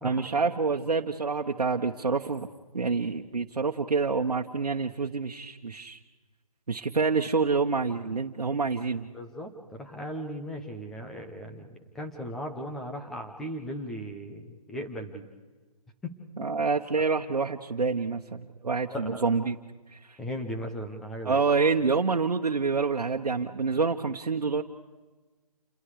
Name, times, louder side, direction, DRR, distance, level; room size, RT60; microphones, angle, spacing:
voice 1, 0.0-2.5 2.7-6.0 6.7-9.1 16.4-19.6 19.9-20.2 21.2-24.6, right 4 dB, 90° right, 0 dB, 1.3 m, -27 dB
voice 2, 9.1-15.3 16.0-16.5 18.9-19.2 20.2-21.4, equal, ahead, 3 dB, 0.8 m, -37 dB
29.0 x 22.0 x 4.9 m, 1.3 s
hypercardioid pair, 170°, 19 cm